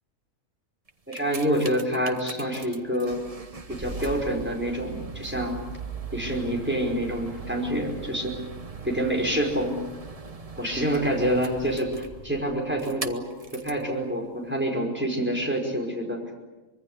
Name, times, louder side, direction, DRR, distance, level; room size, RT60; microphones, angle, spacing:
sound 1, 0.9-13.9 14.6-14.7, right 4 dB, 30° right, 1.2 m, -39 dB
voice 1, 1.1-3.2 3.7-5.6 6.1-8.3 8.8-9.8 10.6-13.3 13.5-16.2, equal, 10° right, 0 dB, 5.3 m, -27 dB
25.0 x 22.5 x 8.3 m, 1.2 s
omnidirectional pair, 1.4 m